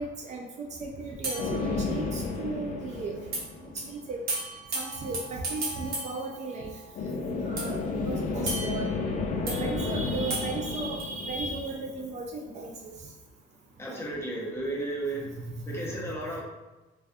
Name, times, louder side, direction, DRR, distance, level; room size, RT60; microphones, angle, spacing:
voice 1, 0.0-3.2 3.6-4.2 4.7-6.8 7.5-8.9 9.4-12.9 13.9-14.0 15.5-15.6 15.8-15.9, right 3 dB, 45° right, 0 dB, 0.4 m, -35 dB
sound 1, 1.2-2.4 3.3-3.4 3.8-3.9 4.3-7.0 7.6-9.6 10.3-11.0, right 2 dB, 60° right, 0.9 m, -36 dB
sound 2, 1.4-4.2 7.0-12.4, left 3 dB, 50° left, 0.4 m, -32 dB
voice 2, 13.8-15.3 15.7-16.4, right 2 dB, 15° left, -4 dB, 0.7 m, -33 dB
2.3 x 2.2 x 2.5 m, 1.1 s
cardioid pair, 110°, 17 cm